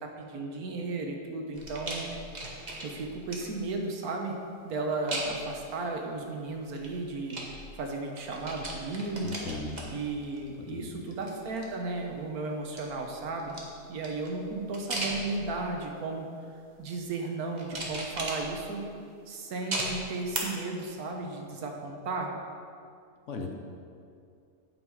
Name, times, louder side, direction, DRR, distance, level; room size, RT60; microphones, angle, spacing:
voice 1, 0.0-2.1 2.8-4.4 4.6-9.3 9.9-13.6 13.9-16.3 16.8-18.8 19.3-22.3, right 3 dB, 75° right, 2 dB, 1.5 m, -34 dB
sound 1, 1.5-3.7 5.1-5.6 6.6-7.9 8.2-10.6 11.0-12.1 12.6-15.8 16.4-16.8 17.6-18.9 19.7-20.4 20.8-20.9, right 2 dB, 30° right, 1.1 m, -38 dB
voice 2, 9.2-9.8 10.7-10.9 23.3-23.5, left 3 dB, 60° left, 3 dB, 1.0 m, -37 dB
9.0 x 5.9 x 4.7 m, 2.4 s
omnidirectional pair, 1.6 m